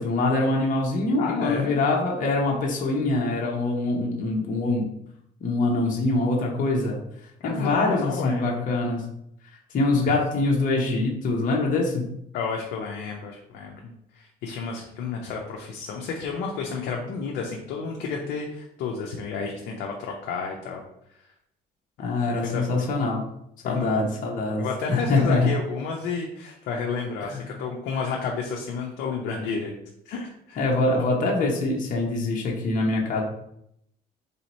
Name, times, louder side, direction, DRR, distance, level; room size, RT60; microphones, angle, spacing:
voice 1, 0.0-4.9 5.4-7.0 7.4-9.0 9.7-12.0 22.0-23.2 23.6-25.5 27.3-27.4 28.0-28.1 30.6-33.2, left 2 dB, 50° left, -1 dB, 0.9 m, -24 dB
voice 2, 1.2-1.7 7.4-8.7 9.9-10.0 12.3-20.8 21.2-21.3 22.0-22.9 23.6-24.1 24.6-29.7 30.1-31.0, left 5 dB, 80° left, 0 dB, 0.6 m, -31 dB
3.5 x 2.8 x 4.2 m, 0.76 s
cardioid pair, 110°, 17 cm